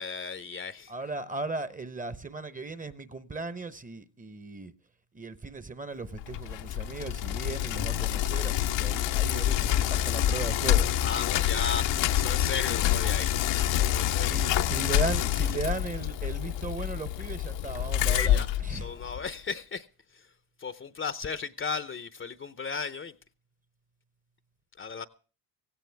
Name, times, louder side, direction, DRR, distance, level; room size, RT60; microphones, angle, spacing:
voice 1, 0.0-0.9 11.0-13.3 13.6-14.4 18.0-19.9 20.1-20.3 20.6-23.1 24.8-25.1, left 5 dB, 30° left, 0.7 m, -36 dB
voice 2, 0.9-4.7 5.1-10.9 14.2-18.8, right 3 dB, 20° right, 0.9 m, -37 dB
Bicycle, 6.1-19.3, left 12 dB, 80° left, 1.1 m, -27 dB
17.0 x 16.0 x 3.4 m
cardioid pair, 125°, 44 cm